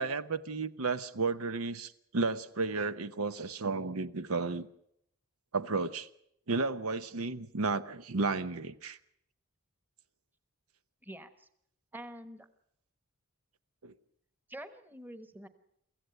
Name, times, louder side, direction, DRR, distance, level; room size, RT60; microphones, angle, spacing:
voice 1, 0.0-4.7 5.5-6.1 6.5-9.0 13.8-13.9, right 4 dB, 75° right, 0.8 m, -33 dB
voice 2, 11.0-11.5 11.9-12.5 14.5-15.5, right 1 dB, 10° right, 1.2 m, -46 dB
24.0 x 15.0 x 7.9 m
head